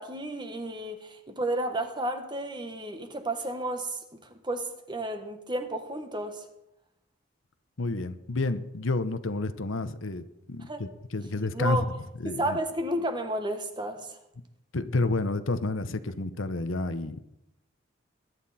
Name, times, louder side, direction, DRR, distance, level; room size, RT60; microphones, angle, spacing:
voice 1, 0.0-4.0 4.4-6.5 10.7-10.9 11.5-11.9 12.2-14.1, right 1 dB, 25° right, 1.4 m, -32 dB
voice 2, 7.8-11.9 12.2-12.6 14.7-17.2, left 2 dB, 85° left, 1.0 m, -30 dB
21.0 x 11.0 x 4.3 m
head